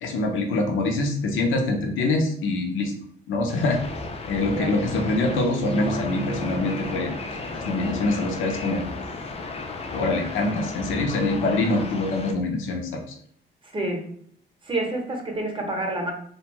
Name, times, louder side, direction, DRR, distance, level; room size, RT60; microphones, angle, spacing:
voice 1, 0.0-2.9 3.3-3.8 4.3-7.1 7.5-8.8 9.2-9.3 9.9-13.0, left 2 dB, 80° left, 3 dB, 0.6 m, -24 dB
sound 1, 3.5-12.3, left 3 dB, 30° left, 0.4 m, -35 dB
Bowed string instrument, 5.0-10.0, right 3 dB, 85° right, 0.5 m, -36 dB
voice 2, 13.6-14.1 14.6-16.1, right 2 dB, 25° right, 2 dB, 0.7 m, -28 dB
2.5 x 2.3 x 2.9 m, 0.62 s
cardioid pair, 90°, 20 cm